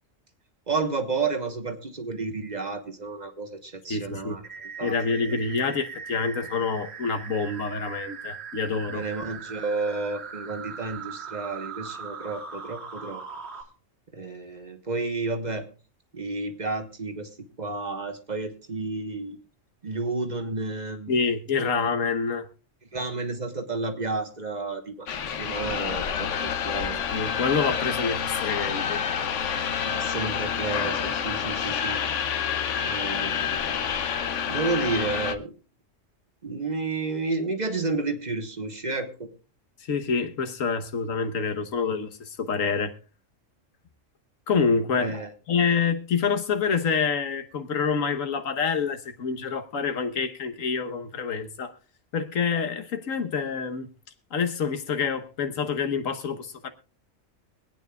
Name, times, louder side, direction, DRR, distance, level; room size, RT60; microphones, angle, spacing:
voice 1, 0.7-4.4 4.8-5.0 8.9-13.2 14.1-15.7 16.1-19.4 19.8-21.1 22.9-25.1 25.4-27.1 29.8-32.0 32.8-33.8 34.5-35.5 36.4-39.3 45.0-45.3, right 3 dB, 35° right, 1.2 m, -31 dB
voice 2, 3.9-4.4 4.8-9.1 21.1-22.5 27.1-29.0 39.9-42.9 44.5-45.2 45.5-51.7 52.1-53.9 54.3-56.7, left 5 dB, 90° left, 1.5 m, -27 dB
sound 1, 4.4-13.6, right 6 dB, 55° right, 2.2 m, -40 dB
sound 2, 25.1-35.4, left 7 dB, 70° left, 1.1 m, -28 dB
24.0 x 9.2 x 2.3 m
omnidirectional pair, 1.3 m